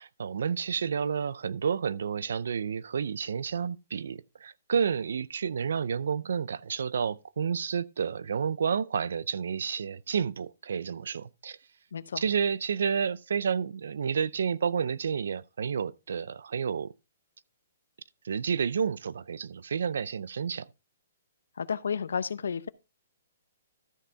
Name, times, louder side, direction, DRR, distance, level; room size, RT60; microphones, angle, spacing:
voice 1, 0.0-11.6 12.2-16.9 18.2-20.7, right 6 dB, 65° right, 0.5 m, -30 dB
voice 2, 11.9-12.2 21.6-22.7, left 6 dB, 85° left, 0.6 m, -32 dB
13.0 x 5.6 x 3.9 m
hypercardioid pair, 180°, 0 cm